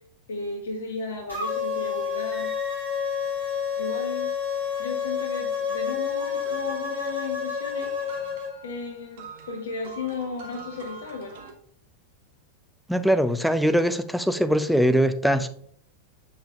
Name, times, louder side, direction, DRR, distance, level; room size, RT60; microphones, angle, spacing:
voice 1, 0.3-2.5 3.8-4.4 4.8-8.3 8.6-11.4, left 4 dB, 65° left, 2 dB, 0.9 m, -35 dB
sound 1, 1.3-8.5, left 6 dB, 80° right, 2.7 m, -29 dB
Wind instrument woodwind instrument, 2.3-6.2, right 3 dB, 20° right, 1.0 m, -48 dB
sound 2, 6.2-11.5, right 3 dB, 55° right, 1.2 m, -45 dB
voice 2, 12.9-15.5, equal, ahead, 12 dB, 0.5 m, -22 dB
8.4 x 5.7 x 2.4 m, 0.62 s
figure-of-eight pair, 90°, 0 cm